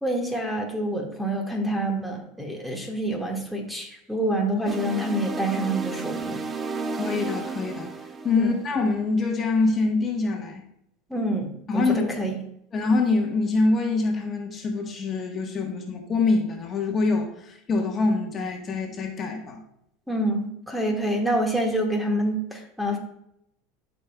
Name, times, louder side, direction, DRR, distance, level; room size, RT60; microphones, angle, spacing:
voice 1, 0.0-6.4 8.4-8.5 11.1-12.3 20.1-23.0, right 1 dB, 5° right, 2 dB, 1.4 m, -27 dB
sound 1, 4.7-9.0, right 4 dB, 20° right, 0.6 m, -33 dB
voice 2, 7.0-7.9 8.2-10.6 11.7-12.1 12.7-19.6, left 3 dB, 30° left, 2 dB, 1.3 m, -25 dB
13.0 x 5.2 x 2.3 m, 0.76 s
supercardioid pair, 115°, 0 cm